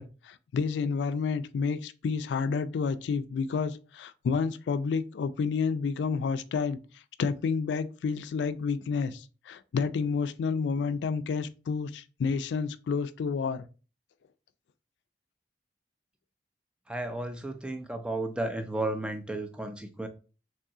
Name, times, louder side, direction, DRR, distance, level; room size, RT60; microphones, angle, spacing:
voice 1, 0.0-6.8 7.2-13.6, left 5 dB, 90° left, 0.3 m, -30 dB
voice 2, 16.9-20.1, right 2 dB, 5° right, 0.3 m, -33 dB
3.6 x 3.0 x 2.7 m
head